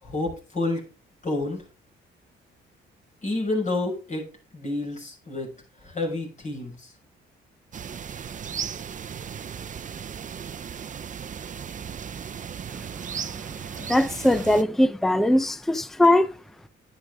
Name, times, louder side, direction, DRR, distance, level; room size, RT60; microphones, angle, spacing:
voice 1, 0.0-0.8 1.2-1.6 3.2-4.3 4.5-5.5 5.8-6.9, left 2 dB, 40° left, 6.4 m, -29 dB
sound 1, 7.7-14.6, right 7 dB, 40° right, 0.7 m, -36 dB
voice 2, 13.8-16.3, left 1 dB, ahead, 0.6 m, -20 dB
10.0 x 9.5 x 3.6 m
cardioid pair, 90°, 20 cm